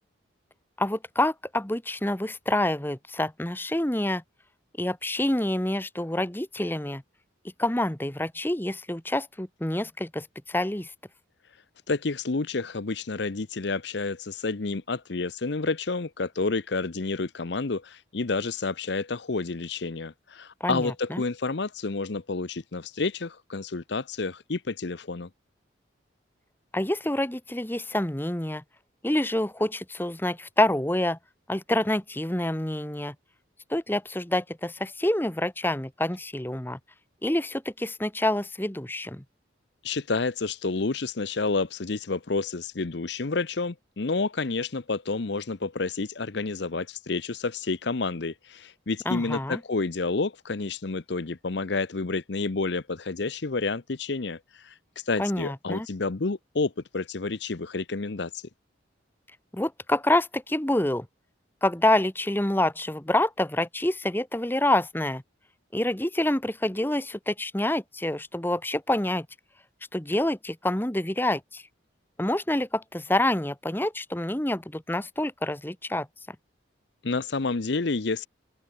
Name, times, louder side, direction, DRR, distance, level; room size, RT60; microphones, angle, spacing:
voice 1, 0.8-4.2 4.8-7.0 7.6-10.9 20.6-21.2 26.7-28.6 29.0-31.2 31.5-33.1 33.7-36.8 37.2-39.2 49.0-49.6 55.2-55.9 59.5-61.1 61.6-65.2 65.7-69.3 69.9-71.6 72.2-76.4, left 1 dB, 10° left, 1.1 m, -27 dB
voice 2, 11.9-25.3 39.8-58.4 77.0-78.3, left 3 dB, 60° left, 0.8 m, -29 dB
head